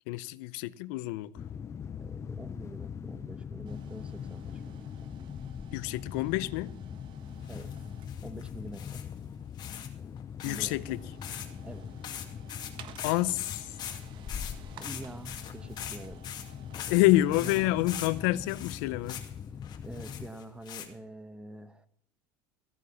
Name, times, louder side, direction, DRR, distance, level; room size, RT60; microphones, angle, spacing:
voice 1, 0.1-1.3 5.7-6.7 10.4-11.0 13.0-13.7 16.9-19.2, left 17 dB, 75° left, 0.6 m, -28 dB
sound 1, 1.3-20.3, left 7 dB, 25° left, 0.5 m, -42 dB
voice 2, 2.0-5.1 7.5-7.9 8.2-9.0 10.4-11.0 11.6-12.0 14.8-16.2 17.3-17.7 19.8-21.9, right 2 dB, 10° right, 1.0 m, -46 dB
sound 2, 3.7-20.5, right 9 dB, 50° right, 1.3 m, -56 dB
sound 3, 7.4-7.7 8.1-9.1 9.6-9.9 10.2-10.7 11.2-11.5 11.7-11.8 12.0-17.0 17.3-18.1 18.5-19.3 19.6-20.9, left 10 dB, 45° left, 2.2 m, -42 dB
14.5 x 9.0 x 7.0 m
supercardioid pair, 115°, 10 cm